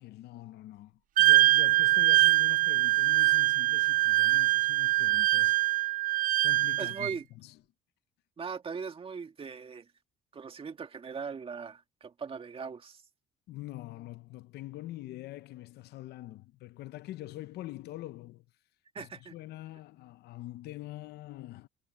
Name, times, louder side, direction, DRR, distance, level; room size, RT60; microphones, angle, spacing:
voice 1, 0.0-5.6 6.4-7.6 13.5-18.4 19.0-21.7, left 16 dB, 75° left, 0.9 m, -44 dB
Wind instrument woodwind instrument, 1.2-7.2, right 16 dB, 50° right, 0.4 m, -23 dB
voice 2, 6.8-7.2 8.4-9.9 10.3-13.0 18.9-19.4, right 5 dB, 35° right, 2.1 m, -40 dB
cardioid pair, 110°, 17 cm